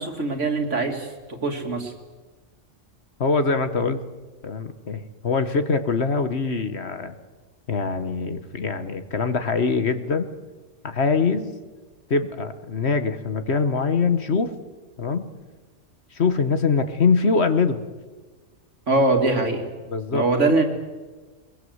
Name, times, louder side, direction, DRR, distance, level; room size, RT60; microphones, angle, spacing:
voice 1, 0.0-1.9 18.9-19.6 20.1-20.6, right 2 dB, 65° right, 4 dB, 2.9 m, -22 dB
voice 2, 3.2-4.0 4.4-7.1 7.7-10.3 10.8-11.5 12.1-14.5 15.0-15.3 16.1-17.8 19.9-20.2, left 4 dB, 55° left, 10 dB, 1.5 m, -23 dB
23.0 x 22.0 x 8.0 m, 1.3 s
omnidirectional pair, 1.3 m